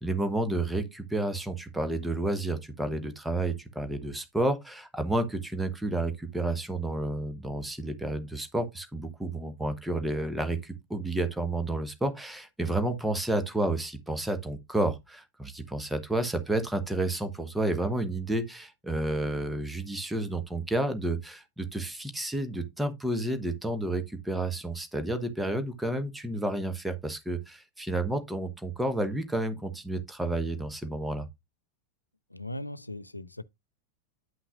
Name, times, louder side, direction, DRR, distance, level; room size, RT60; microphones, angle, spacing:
voice 1, 0.0-31.3, right 2 dB, 5° right, 1.0 m, -30 dB
voice 2, 32.3-33.4, left 1 dB, 85° left, 0.4 m, -38 dB
9.5 x 5.8 x 2.4 m
figure-of-eight pair, 90°, 0 cm